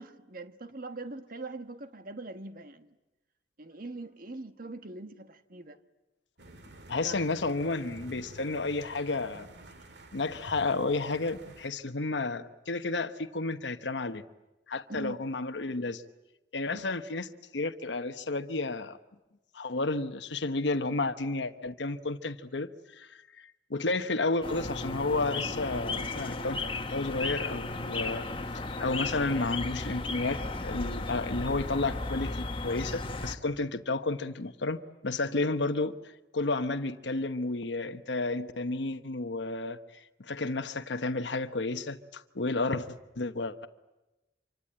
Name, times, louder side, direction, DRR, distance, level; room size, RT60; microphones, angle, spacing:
voice 1, 0.0-2.9 3.6-5.8 7.0-7.1 14.9-15.2 16.7-16.8, right 2 dB, 50° right, 1.3 m, -42 dB
sound 1, 6.4-11.7, right 1 dB, 70° right, 2.0 m, -50 dB
voice 2, 6.9-9.5 10.1-14.2 14.7-16.0 16.5-17.3 17.5-19.0 19.5-23.1 23.4-26.6 26.9-28.2 28.8-34.8 35.0-35.9 36.3-39.8 40.3-42.9 43.2-43.7, left 3 dB, 80° left, 1.0 m, -31 dB
sound 2, 24.4-33.4, left 3 dB, 30° left, 1.4 m, -35 dB
sound 3, 26.2-31.7, left 1 dB, 5° left, 3.8 m, -56 dB
26.5 x 25.0 x 8.9 m
head